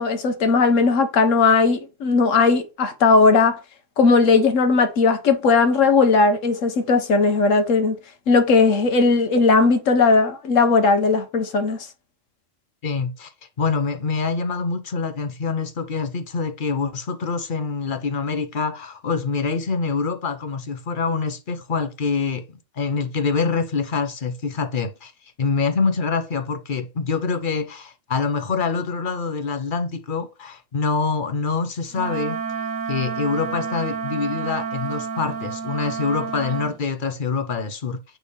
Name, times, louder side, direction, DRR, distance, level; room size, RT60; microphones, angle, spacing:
voice 1, 0.0-3.6 4.0-8.0 8.3-11.9, left 4 dB, 90° left, 1.4 m, -17 dB
voice 2, 12.8-13.3 13.6-22.4 22.8-25.1 25.4-32.4 32.9-38.0, left 4 dB, 45° left, 0.9 m, -25 dB
Wind instrument woodwind instrument, 31.9-36.8, right 5 dB, 85° right, 1.4 m, -30 dB
8.4 x 3.5 x 3.4 m
omnidirectional pair, 1.3 m